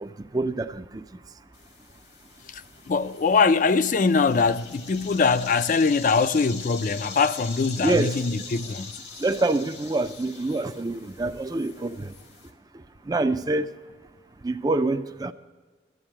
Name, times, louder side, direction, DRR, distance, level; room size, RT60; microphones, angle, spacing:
voice 1, 0.0-1.0 7.8-8.2 9.2-12.1 13.1-13.7 14.4-15.3, right 2 dB, 20° right, 0.4 m, -26 dB
sound 1, 1.5-12.5, left 5 dB, 80° left, 1.9 m, -42 dB
voice 2, 2.5-8.9, left 4 dB, 45° left, 0.4 m, -22 dB
13.0 x 8.0 x 8.8 m
head